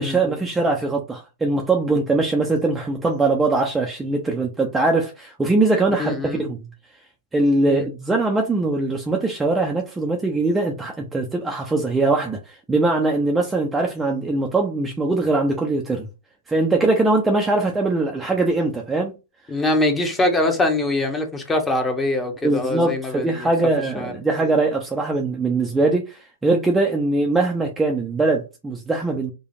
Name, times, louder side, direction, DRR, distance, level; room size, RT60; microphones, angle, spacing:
voice 1, 0.0-6.7 7.3-16.0 16.5-19.1 22.4-29.3, right 2 dB, 10° right, 0.6 m, -21 dB
voice 2, 6.0-6.4 7.6-7.9 19.5-23.5 24.0-24.1, left 2 dB, 15° left, 1.0 m, -23 dB
4.9 x 2.3 x 2.7 m
figure-of-eight pair, 110°, 0 cm